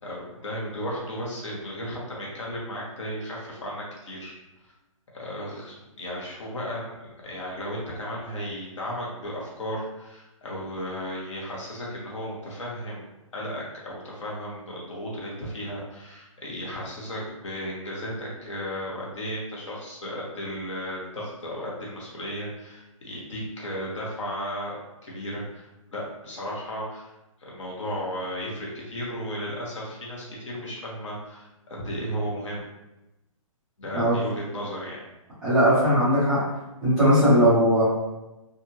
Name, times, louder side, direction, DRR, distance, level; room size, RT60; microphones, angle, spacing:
voice 1, 0.0-4.4 5.1-13.1 13.3-24.8 25.0-27.1 27.4-32.7 33.8-35.0, equal, 55° left, -4 dB, 1.1 m, -34 dB
voice 2, 35.4-36.4 36.8-37.8, equal, ahead, -20 dB, 0.3 m, -19 dB
2.7 x 2.5 x 2.8 m, 0.97 s
hypercardioid pair, 170°, 18 cm